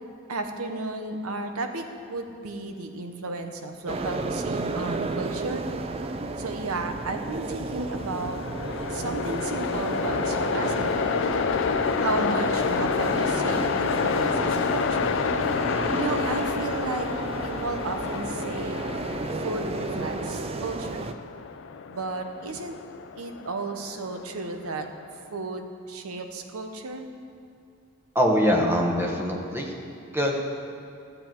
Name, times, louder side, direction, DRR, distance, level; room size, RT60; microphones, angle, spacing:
voice 1, 0.3-5.6 6.4-8.4 8.9-11.3 12.0-15.2 15.9-17.1 17.4-18.9 19.4-21.1 21.9-22.8 23.1-24.9 25.3-27.1, right 3 dB, 90° right, 6 dB, 0.9 m, -33 dB
sound 1, 3.9-21.1, right 3 dB, 25° right, 0.4 m, -32 dB
Train, 7.7-24.9, left 5 dB, 60° left, 0.4 m, -29 dB
voice 2, 28.1-29.7 30.1-30.4, equal, 10° right, 0 dB, 1.0 m, -23 dB
12.5 x 7.7 x 4.5 m, 2.5 s
head